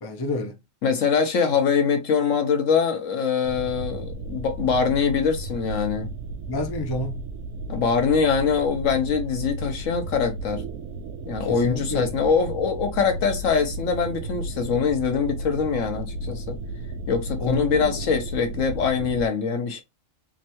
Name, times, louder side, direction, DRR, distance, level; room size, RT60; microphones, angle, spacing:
voice 1, 0.0-0.6 6.5-7.2 11.5-12.1 17.4-18.0, left 2 dB, 30° left, 0.5 m, -30 dB
voice 2, 0.8-6.1 7.7-10.6 11.3-16.6 17.1-19.8, left 6 dB, 70° left, 1.2 m, -23 dB
sound 1, 3.4-19.3, right 1 dB, 85° right, 1.1 m, -34 dB
3.5 x 3.2 x 2.9 m
omnidirectional pair, 1.4 m